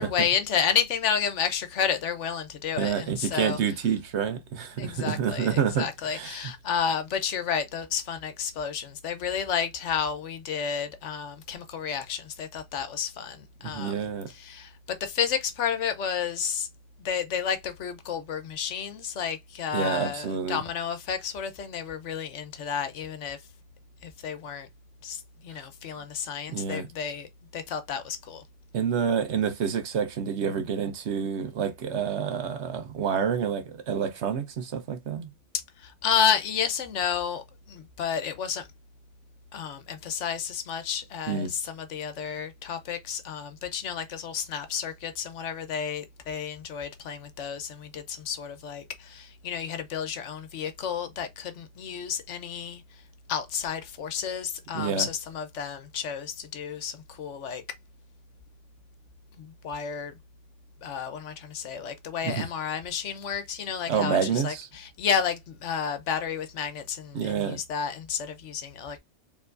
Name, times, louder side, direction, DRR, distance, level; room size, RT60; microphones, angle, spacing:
voice 1, 0.0-3.6 4.8-13.9 14.4-16.7 17.0-23.4 24.0-24.7 25.0-28.4 35.8-38.7 39.5-52.8 53.3-57.6 59.4-60.1 60.8-69.0, left 7 dB, 75° left, 1.0 m, -31 dB
voice 2, 2.8-6.5 13.6-14.3 19.7-20.6 26.5-26.9 28.7-35.3 41.3-41.5 54.7-55.1 62.2-62.5 63.9-64.7 67.1-67.6, right 7 dB, 70° right, 1.0 m, -28 dB
4.5 x 3.2 x 2.5 m
omnidirectional pair, 1.2 m